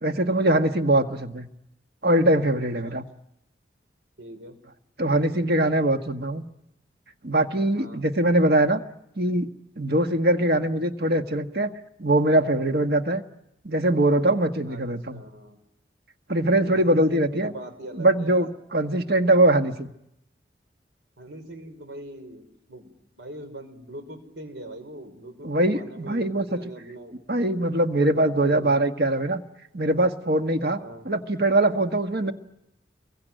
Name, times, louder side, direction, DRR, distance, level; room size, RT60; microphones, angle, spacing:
voice 1, 0.0-1.5 2.0-3.0 5.0-6.4 7.2-8.8 9.2-9.5 9.8-11.7 12.0-13.2 13.6-15.2 16.3-17.5 18.0-19.9 25.4-26.6 27.3-29.4 29.7-32.3, right 1 dB, 55° right, 6 dB, 1.6 m, -22 dB
voice 2, 0.9-1.2 2.8-3.0 4.2-4.6 7.6-8.0 14.7-14.8 15.1-15.6 16.6-18.5 21.2-27.2 28.1-28.8 30.8-31.1, right 1 dB, 90° right, 8 dB, 5.4 m, -42 dB
26.5 x 23.0 x 9.2 m, 0.81 s
head